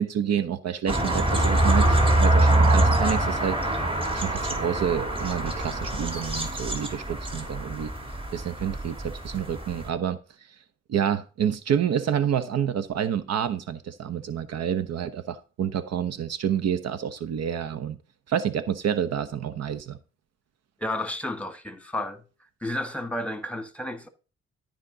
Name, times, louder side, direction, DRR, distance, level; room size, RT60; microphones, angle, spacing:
voice 1, 0.0-3.7 4.1-7.9 8.3-10.2 10.9-18.0 18.3-20.0, right 9 dB, 60° right, 0.9 m, -28 dB
sound 1, 0.9-9.9, right 1 dB, 20° right, 2.6 m, -24 dB
voice 2, 20.8-22.2 22.6-24.1, left 1 dB, 5° left, 1.6 m, -31 dB
13.0 x 5.1 x 3.8 m
hypercardioid pair, 55°, 29 cm